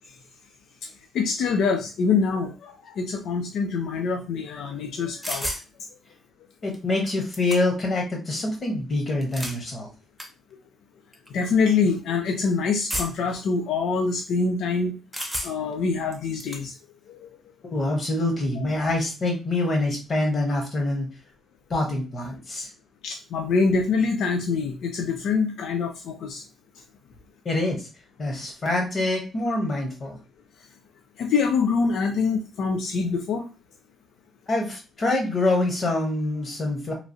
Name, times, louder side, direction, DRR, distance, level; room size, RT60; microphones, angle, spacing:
voice 1, 1.1-5.5 11.3-14.9 15.4-16.7 17.1-17.4 23.0-26.4 31.2-33.5, left 5 dB, 75° left, 3 dB, 0.5 m, -25 dB
sound 1, 5.2-5.7 6.7-6.8 7.1-7.9 9.1-9.6 10.2-10.3 11.1-11.3 12.9-13.3 15.1-15.7 16.1-16.6, equal, ahead, 0.7 m, -32 dB
voice 2, 6.6-9.9 17.7-21.1 21.7-22.7 27.4-27.9 28.2-30.2 34.5-36.9, left 2 dB, 45° left, 1 dB, 1.0 m, -25 dB
3.0 x 2.3 x 2.6 m, 0.32 s
cardioid pair, 90°, 0 cm